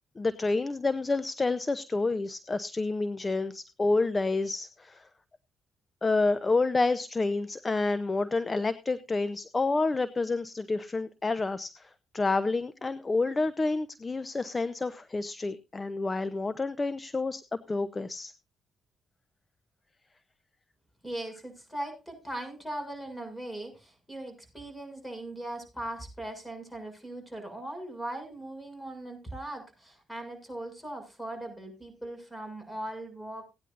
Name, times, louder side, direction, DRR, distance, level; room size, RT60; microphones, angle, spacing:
voice 1, 0.2-5.1 6.0-17.4 17.7-18.3, left 3 dB, 30° left, 15 dB, 0.8 m, -29 dB
voice 2, 21.0-33.4, right 1 dB, 10° left, 6 dB, 6.8 m, -39 dB
17.5 x 10.0 x 2.6 m, 0.27 s
supercardioid pair, 65°, 0 cm